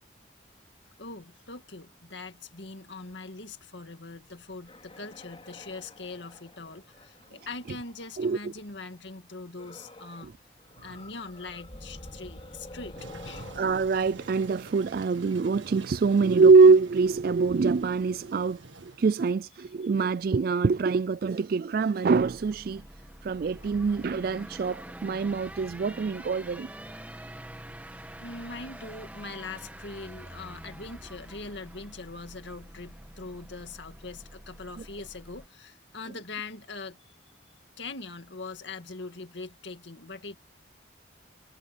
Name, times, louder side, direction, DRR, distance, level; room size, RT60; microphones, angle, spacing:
voice 1, 1.0-10.3 10.8-13.0 13.2-13.5 23.3-23.7 24.0-24.1 28.2-37.0 37.8-40.4, left 3 dB, 70° left, 2.0 m, -42 dB
sound 1, 4.5-8.5 9.6-10.3 10.6-15.5, left 1 dB, 30° left, 3.5 m, -48 dB
voice 2, 8.2-8.5 10.2-10.3 13.6-22.8 23.2-26.7, right 4 dB, 50° right, 0.3 m, -24 dB
Toilet flush, 13.0-19.3, right 2 dB, 80° right, 1.8 m, -47 dB
sound 2, 22.2-35.5, right 1 dB, 10° right, 1.8 m, -46 dB
head